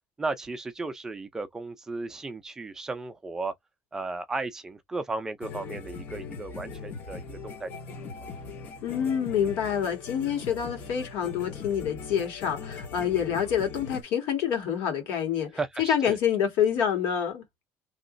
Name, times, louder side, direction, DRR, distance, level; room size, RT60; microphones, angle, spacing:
voice 1, 0.2-3.5 3.9-7.7 15.6-16.2, right 3 dB, 10° right, 0.4 m, -35 dB
sound 1, 5.4-14.0, left 5 dB, 40° left, 0.8 m, -40 dB
voice 2, 8.8-15.5 15.8-17.4, left 8 dB, 65° left, 1.8 m, -27 dB
3.0 x 2.9 x 2.6 m
cardioid pair, 175°, 5 cm